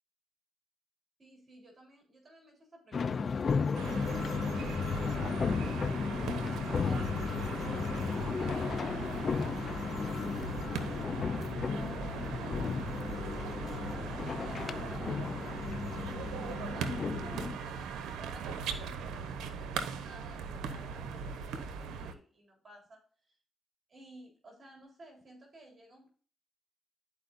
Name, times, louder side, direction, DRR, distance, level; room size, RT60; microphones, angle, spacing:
voice 1, 1.2-3.8 4.4-5.9 6.7-9.9 10.3-13.0 13.6-23.4 23.9-26.1, right 1 dB, 40° right, 0 dB, 3.7 m, -55 dB
sound 1, 2.9-17.6, left 5 dB, 50° left, 0.6 m, -34 dB
sound 2, 3.7-22.1, right 6 dB, 85° right, 0.9 m, -39 dB
12.0 x 4.9 x 2.6 m, 0.44 s
cardioid pair, 70°, 0 cm